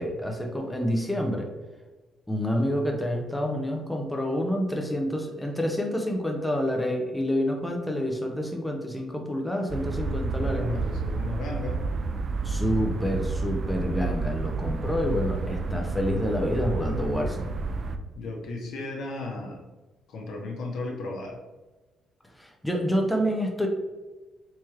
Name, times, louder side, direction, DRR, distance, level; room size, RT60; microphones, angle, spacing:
voice 1, 0.0-1.5 2.3-10.8 12.4-17.5 22.4-23.7, equal, 5° left, 1 dB, 0.6 m, -28 dB
sound 1, 9.7-18.0, right 3 dB, 50° right, 0.3 m, -30 dB
voice 2, 10.3-11.8 18.2-19.6 20.1-21.4, left 2 dB, 70° left, 1 dB, 0.8 m, -35 dB
3.5 x 2.9 x 3.1 m, 1.2 s
cardioid pair, 90°, 0 cm